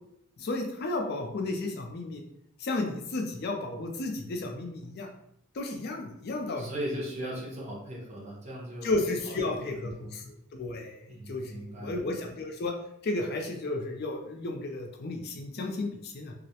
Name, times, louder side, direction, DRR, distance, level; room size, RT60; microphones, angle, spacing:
voice 1, 0.4-2.2 2.6-5.1 5.6-6.7 8.8-11.0 11.3-12.7 13.0-16.3, left 2 dB, 50° left, 3 dB, 0.4 m, -33 dB
voice 2, 6.5-9.0 9.3-10.1 11.1-12.0, equal, 30° right, -4 dB, 0.7 m, -38 dB
2.3 x 2.0 x 2.7 m, 0.75 s
head